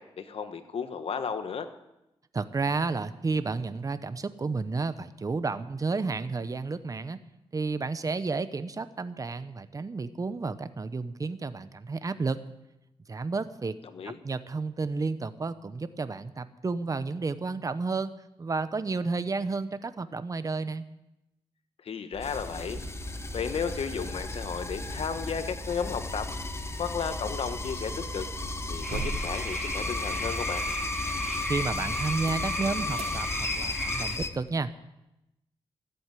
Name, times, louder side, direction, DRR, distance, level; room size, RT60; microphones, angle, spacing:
voice 1, 0.0-1.7 13.9-14.2 21.8-22.8 23.3-26.3 26.8-28.3 28.7-30.6, left 6 dB, 70° left, 9 dB, 1.3 m, -33 dB
voice 2, 2.3-7.2 7.5-12.4 13.1-13.7 14.0-18.1 18.4-20.9 31.5-34.7, right 4 dB, 35° right, 12 dB, 0.8 m, -31 dB
sound 1, 22.1-33.6, right 2 dB, 85° right, 3.5 m, -40 dB
sound 2, 22.2-34.3, left 3 dB, 25° left, 1.1 m, -35 dB
sound 3, 28.8-34.2, equal, ahead, 3.2 m, -35 dB
14.5 x 8.0 x 9.1 m, 0.92 s
cardioid pair, 75°, 10 cm